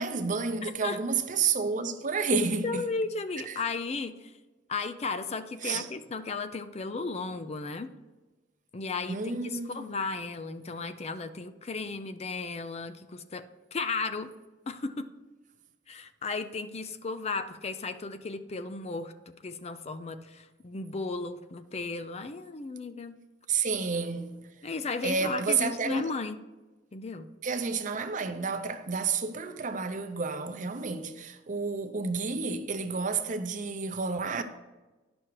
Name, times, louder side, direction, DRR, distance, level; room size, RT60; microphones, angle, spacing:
voice 1, 0.0-2.9 3.5-3.6 5.6-5.9 9.1-10.0 23.5-24.4 25.0-26.1 27.4-34.4, right 5 dB, 45° right, 0.7 m, -30 dB
voice 2, 2.3-4.3 4.7-7.9 8.7-14.3 14.7-15.1 15.9-23.2 24.6-26.4 26.9-27.3, left 4 dB, 35° left, 0.5 m, -35 dB
10.5 x 6.2 x 4.7 m
head